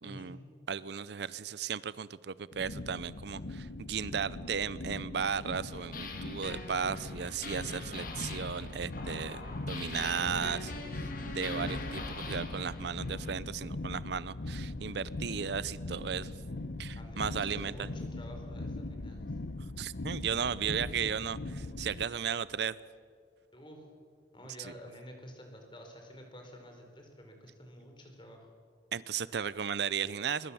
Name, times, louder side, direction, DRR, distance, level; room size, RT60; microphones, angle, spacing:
voice 1, 0.0-0.4 0.7-16.3 16.8-17.9 19.8-22.8 24.6-24.7 28.9-30.5, right 7 dB, 60° right, 18 dB, 0.5 m, -35 dB
sound 1, 2.5-22.0, left 2 dB, 65° left, 0.9 m, -41 dB
sound 2, 5.6-13.3, left 2 dB, 45° left, 2.3 m, -43 dB
voice 2, 17.0-19.3 23.5-23.9 24.3-28.5, equal, 25° left, 3 dB, 4.2 m, -50 dB
23.0 x 21.5 x 7.1 m, 2.1 s
head